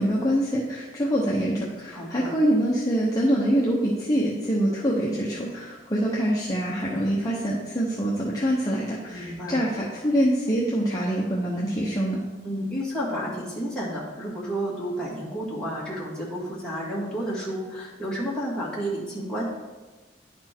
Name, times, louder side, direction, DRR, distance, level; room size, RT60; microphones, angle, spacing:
voice 1, 0.0-12.2, equal, 20° left, -5 dB, 0.9 m, -25 dB
voice 2, 1.9-2.3 9.1-9.6 12.4-19.4, equal, 5° left, -8 dB, 2.1 m, -31 dB
10.5 x 4.3 x 4.5 m, 1.3 s
head